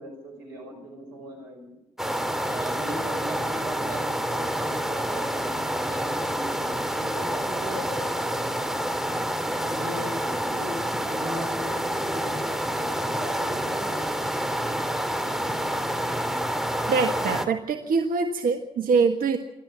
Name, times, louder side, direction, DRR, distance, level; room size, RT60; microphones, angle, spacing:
voice 1, 0.0-1.8 2.4-8.8 9.2-14.6, equal, 85° right, 1 dB, 5.7 m, -39 dB
sound 1, 2.0-17.5, equal, ahead, 2.7 m, -28 dB
voice 2, 16.9-19.4, right 5 dB, 60° right, 5 dB, 1.5 m, -24 dB
28.0 x 12.5 x 8.3 m, 0.99 s
hypercardioid pair, 40°, 16 cm